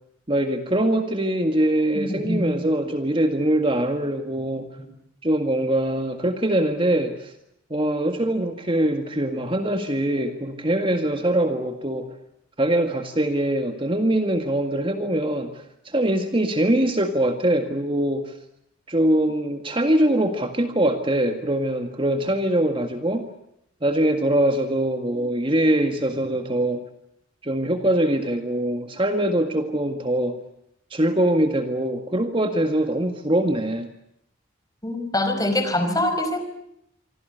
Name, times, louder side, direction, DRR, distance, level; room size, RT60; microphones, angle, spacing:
voice 1, 0.3-4.7 5.2-7.3 7.7-12.1 12.6-18.3 18.9-23.2 23.8-26.8 27.4-30.4 30.9-33.9, right 1 dB, 25° right, 7 dB, 1.8 m, -23 dB
voice 2, 1.9-2.6 4.8-4.9 34.8-36.4, left 1 dB, 20° left, 8 dB, 5.1 m, -24 dB
26.5 x 25.5 x 8.1 m, 0.77 s
head